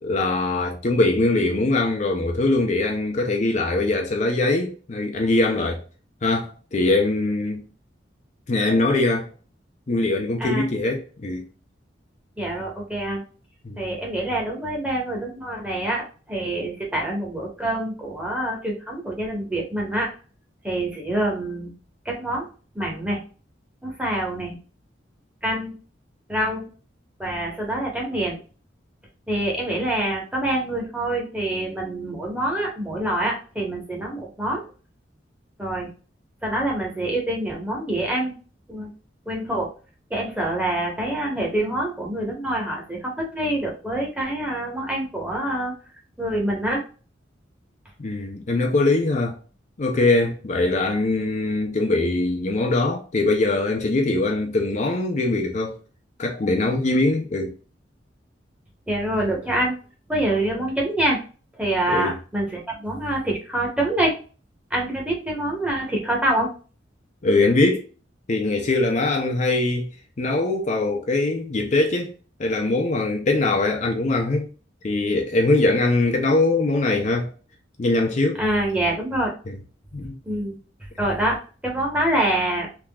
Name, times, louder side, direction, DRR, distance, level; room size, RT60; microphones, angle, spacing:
voice 1, 0.0-5.8 6.2-7.6 8.5-9.3 9.9-11.4 13.6-13.8 48.0-49.4 49.8-55.8 56.2-57.5 61.9-62.2 67.2-67.8 68.3-69.9 70.2-72.1 72.4-74.5 74.8-77.3 77.8-78.4 79.9-80.2, left 2 dB, 40° left, 0.5 m, -22 dB
voice 2, 12.4-13.2 13.8-20.1 20.6-21.7 22.0-22.5 22.7-23.2 23.8-24.6 25.4-25.7 26.3-26.7 27.2-28.4 29.3-34.6 35.6-35.9 36.4-38.3 38.7-38.9 39.3-39.7 40.1-46.8 58.9-59.7 60.1-61.2 61.6-64.2 64.7-66.5 78.3-79.3 80.2-80.6 81.0-82.8, right 1 dB, 5° right, 1.1 m, -26 dB
3.6 x 2.9 x 2.3 m
head